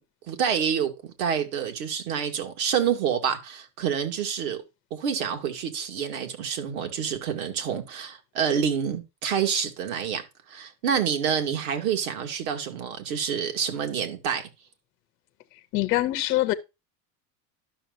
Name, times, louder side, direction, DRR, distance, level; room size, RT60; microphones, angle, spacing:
voice 1, 0.3-4.6 4.9-14.5, right 7 dB, 75° right, 2.3 m, -28 dB
voice 2, 15.7-16.5, left 16 dB, 25° left, 0.3 m, -23 dB
12.0 x 6.3 x 2.5 m
cardioid pair, 180°, 42 cm